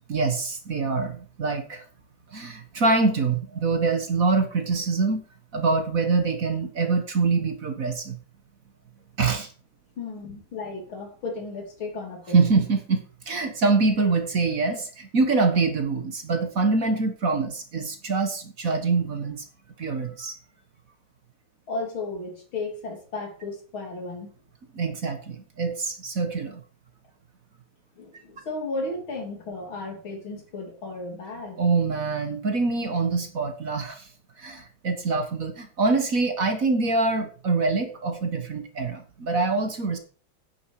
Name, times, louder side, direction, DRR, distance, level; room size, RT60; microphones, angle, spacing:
voice 1, 0.1-1.8 2.3-5.2 5.5-8.2 9.2-9.5 12.3-19.4 19.8-20.4 24.7-26.6 31.6-34.1 34.4-40.0, right 4 dB, 45° right, 6 dB, 1.8 m, -25 dB
voice 2, 10.0-12.5 21.7-24.3 28.0-31.6, left 3 dB, 80° left, 2 dB, 3.8 m, -34 dB
9.8 x 9.5 x 4.8 m, 0.39 s
omnidirectional pair, 2.2 m